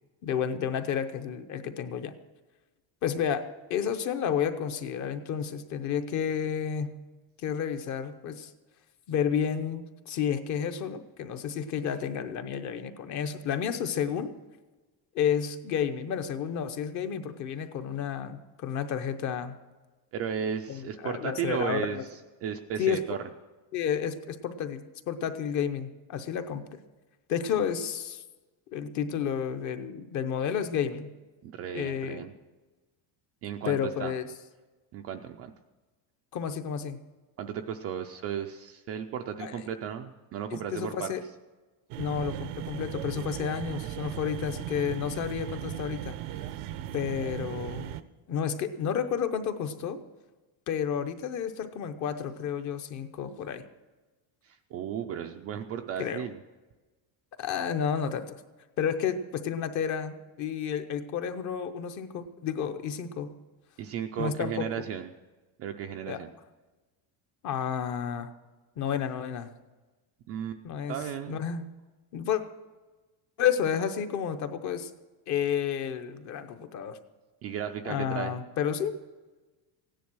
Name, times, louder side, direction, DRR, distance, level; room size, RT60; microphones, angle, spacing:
voice 1, 0.2-2.1 3.0-6.9 7.4-8.5 9.1-14.3 15.1-19.5 20.7-22.0 22.8-23.0 23.7-26.8 27.3-28.2 28.7-31.1 31.7-32.3 33.7-34.2 36.3-37.0 39.4-39.6 40.5-41.2 42.0-46.2 46.9-47.9 48.3-50.0 50.7-53.6 56.0-56.2 57.4-58.4 58.8-63.3 64.2-64.9 66.1-66.2 67.4-68.3 68.8-69.5 70.6-71.0 71.3-71.6 72.1-72.4 73.4-74.9 75.3-77.0 77.8-78.9, left 8 dB, 35° left, 9 dB, 0.8 m, -31 dB
voice 2, 20.1-22.0 22.4-23.2 31.4-32.3 33.4-34.1 34.9-35.5 37.4-41.1 54.4-56.4 63.8-65.1 65.6-66.3 70.3-70.6 70.9-71.4 77.4-78.4, right 8 dB, 35° right, 5 dB, 0.4 m, -34 dB
sound 1, 41.9-48.0, right 12 dB, 85° right, 0.9 m, -37 dB
16.0 x 10.5 x 6.2 m, 1.2 s
cardioid pair, 180°, 48 cm